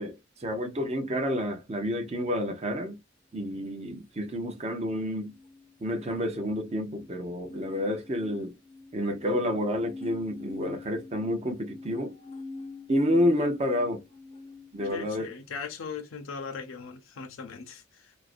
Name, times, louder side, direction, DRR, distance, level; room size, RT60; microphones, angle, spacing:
voice 1, 0.0-3.0 3.3-5.3 5.8-8.5 8.9-12.2 12.9-14.0 14.7-15.3, equal, 35° right, 0.6 m, -29 dB
sound 1, 5.3-14.9, left 3 dB, 30° left, 0.5 m, -45 dB
voice 2, 14.9-18.2, left 5 dB, 85° left, 0.5 m, -39 dB
2.4 x 2.1 x 2.4 m
head